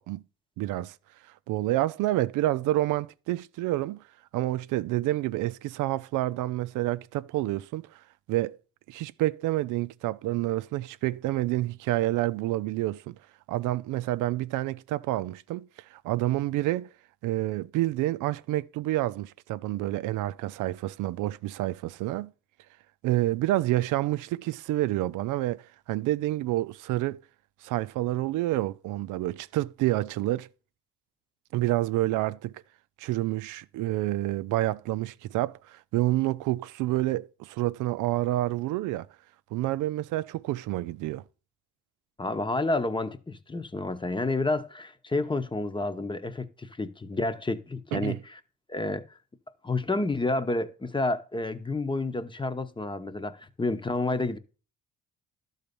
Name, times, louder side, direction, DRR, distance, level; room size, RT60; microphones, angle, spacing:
voice 1, 0.6-0.9 1.5-4.0 4.3-7.9 8.3-8.6 8.9-13.2 13.5-16.9 17.2-22.3 23.0-25.6 25.9-27.2 27.6-30.5 31.5-32.6 33.0-39.1 39.5-41.2 47.9-48.2, right 16 dB, 90° right, 0.5 m, -28 dB
voice 2, 42.2-48.4 48.7-49.1 49.6-54.4, left 2 dB, 15° left, 0.9 m, -30 dB
11.5 x 4.0 x 6.8 m
cardioid pair, 90°, 30 cm